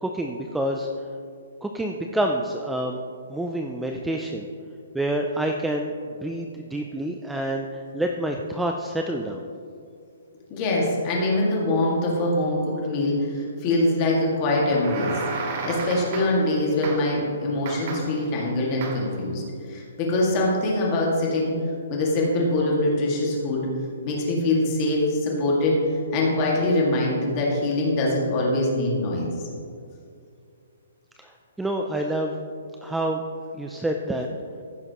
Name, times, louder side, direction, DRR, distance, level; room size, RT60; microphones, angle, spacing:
voice 1, 0.0-0.9 1.6-3.0 3.3-4.5 4.9-5.9 6.2-9.5 31.2-32.3 32.8-33.2 33.5-34.3, right 1 dB, 5° right, 2 dB, 0.3 m, -27 dB
voice 2, 10.5-15.1 15.6-19.4 19.7-21.6 21.9-23.7 24.0-25.8 26.1-29.3, left 2 dB, 25° left, -3 dB, 2.0 m, -23 dB
sound 1, 14.5-16.5 16.8-17.2 17.6-18.3 18.8-19.2, right 4 dB, 35° right, 0.9 m, -33 dB
15.5 x 6.5 x 3.0 m, 2.4 s
hypercardioid pair, 170°, 0 cm